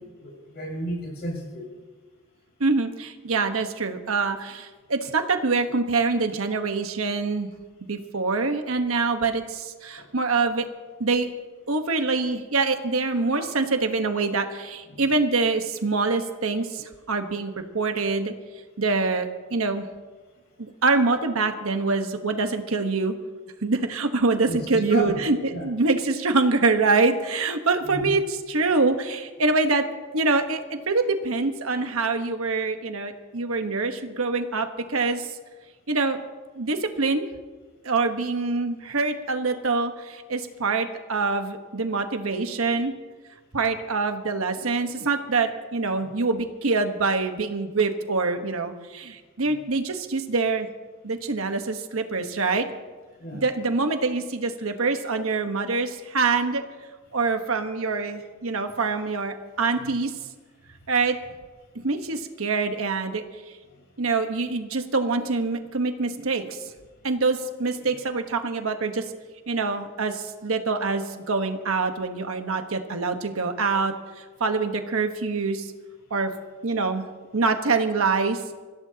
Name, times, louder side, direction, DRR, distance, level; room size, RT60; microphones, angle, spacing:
voice 1, 0.2-1.7 10.0-10.1 13.4-13.5 14.9-15.0 24.5-25.1 25.5-25.7 27.8-28.1 49.5-49.6 53.2-53.4 59.8-59.9, equal, 50° left, -1 dB, 5.4 m, -33 dB
voice 2, 2.6-7.5 7.9-10.7 11.0-11.3 11.7-18.3 18.8-19.9 20.6-23.2 23.6-29.8 30.1-35.3 35.9-36.2 36.6-37.3 37.8-42.9 43.5-50.7 51.0-52.7 53.3-56.6 57.1-60.1 60.9-61.2 61.7-63.2 64.0-66.6 67.0-69.0 69.5-73.9 74.4-75.7 76.1-76.3 76.6-77.0 77.3-78.4, right 3 dB, 75° right, 6 dB, 1.2 m, -25 dB
25.0 x 15.5 x 2.9 m, 1.4 s
head